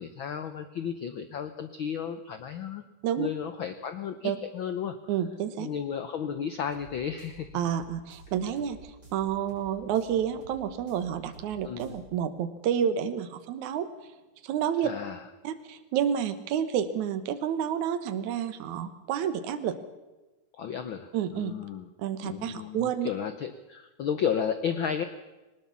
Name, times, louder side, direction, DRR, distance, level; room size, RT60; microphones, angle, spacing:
voice 1, 0.0-2.8 3.2-5.0 5.6-7.5 11.6-11.9 14.8-15.2 20.5-21.9 22.2-25.0, left 8 dB, 85° left, 10 dB, 1.1 m, -33 dB
voice 2, 5.1-5.7 7.5-8.8 9.1-13.9 14.4-14.9 15.4-19.8 21.1-21.5 22.0-23.1, right 9 dB, 75° right, 10 dB, 2.6 m, -29 dB
sound 1, 6.5-12.0, right 2 dB, 30° right, 6.4 m, -51 dB
20.5 x 19.0 x 7.2 m, 1.1 s
omnidirectional pair, 3.5 m